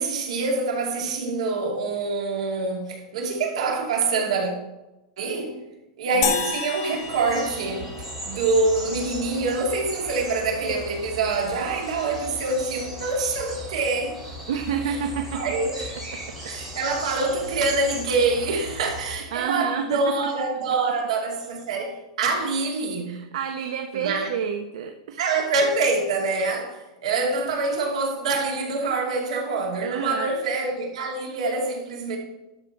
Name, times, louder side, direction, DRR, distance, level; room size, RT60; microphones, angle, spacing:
voice 1, 0.0-4.5 5.2-5.7 6.0-14.2 14.9-15.0 15.3-15.9 16.5-23.2 23.9-24.3 25.2-32.2, right 3 dB, 75° right, 2.6 m, -25 dB
voice 2, 6.1-6.5 14.5-15.4 16.1-16.2 19.3-20.3 23.1-25.2 29.8-30.3, right 7 dB, 60° right, 0.7 m, -29 dB
sound 1, 6.2-8.7, left 8 dB, 45° left, 1.2 m, -30 dB
sound 2, 7.0-19.1, equal, 5° right, 3.1 m, -37 dB
12.5 x 5.1 x 4.6 m
supercardioid pair, 180°, 4 cm